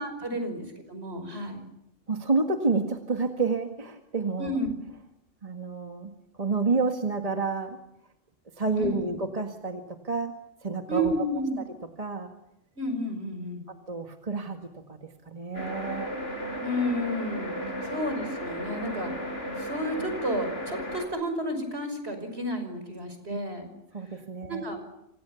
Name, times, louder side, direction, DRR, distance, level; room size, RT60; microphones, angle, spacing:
voice 1, 0.0-1.7 4.4-4.7 8.7-9.1 10.9-11.6 12.8-13.7 16.6-17.5 17.8-19.1 19.6-23.7 24.5-24.8, equal, 60° right, 7 dB, 5.9 m, -31 dB
voice 2, 2.1-4.5 5.4-6.1 6.4-7.8 8.6-10.3 10.6-11.2 12.0-12.3 13.7-16.1 17.6-17.9 23.3-23.4 23.7-24.7, right 3 dB, 30° right, 4 dB, 1.9 m, -29 dB
sound 1, 15.5-21.1, equal, 60° left, 5.1 m, -35 dB
29.0 x 26.0 x 7.1 m, 0.81 s
omnidirectional pair, 1.2 m